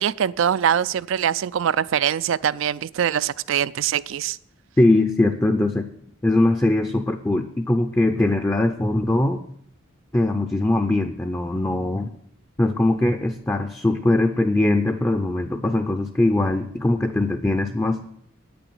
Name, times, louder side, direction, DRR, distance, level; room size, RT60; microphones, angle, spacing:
voice 1, 0.0-4.4, right 9 dB, 70° right, 18 dB, 0.3 m, -23 dB
voice 2, 4.8-5.9 6.2-9.4 10.1-12.1 12.6-18.0, left 2 dB, 10° left, 5 dB, 0.5 m, -21 dB
9.0 x 6.9 x 7.7 m, 0.70 s
head